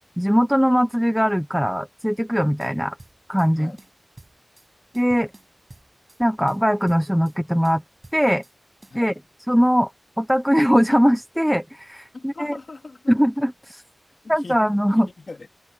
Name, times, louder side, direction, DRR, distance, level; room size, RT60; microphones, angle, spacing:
voice 1, 0.2-3.0 3.3-3.7 4.9-5.3 6.2-7.8 8.1-8.4 8.9-9.1 9.5-9.9 10.2-12.6 13.1-13.8 14.3-15.1, equal, ahead, 1.0 m, -20 dB
sound 1, 2.6-3.5 3.8-4.7 4.9-6.2 6.5-7.4 7.6-8.6 8.8-9.0, right 2 dB, 35° right, 5.9 m, -49 dB
voice 2, 12.1-13.1 14.2-14.6 14.9-15.5, left 3 dB, 60° left, 2.8 m, -40 dB
wide cardioid pair, 60°, 0 cm